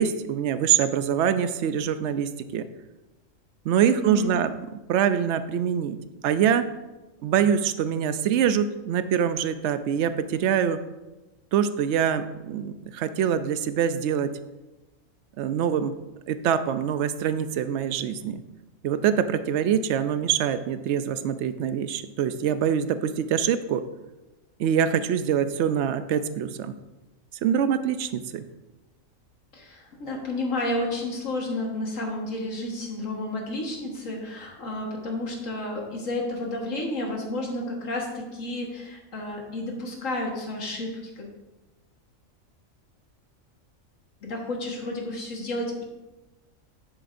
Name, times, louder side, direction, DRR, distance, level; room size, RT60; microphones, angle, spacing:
voice 1, 0.0-2.6 3.6-4.5 4.9-6.0 6.2-6.7 7.2-10.8 11.5-14.3 15.4-15.9 16.3-18.4 18.8-23.8 24.6-26.7 27.4-28.4, right 8 dB, 65° right, 11 dB, 0.8 m, -24 dB
voice 2, 3.9-4.3 29.5-41.3 44.2-45.8, left 1 dB, 70° left, 0 dB, 1.8 m, -31 dB
10.5 x 7.6 x 2.6 m, 1.1 s
omnidirectional pair, 1.4 m